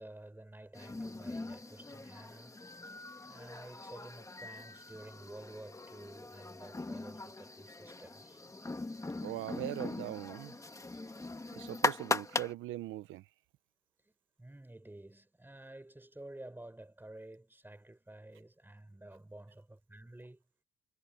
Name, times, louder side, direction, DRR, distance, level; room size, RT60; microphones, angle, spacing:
voice 1, 0.0-2.6 3.3-8.5 14.4-20.4, right 1 dB, 10° right, 4.6 m, -51 dB
sound 1, 0.7-12.5, left 2 dB, 15° left, 1.6 m, -40 dB
voice 2, 9.2-10.6 11.6-13.3, right 15 dB, 90° right, 0.8 m, -40 dB
cardioid pair, 90°, 20 cm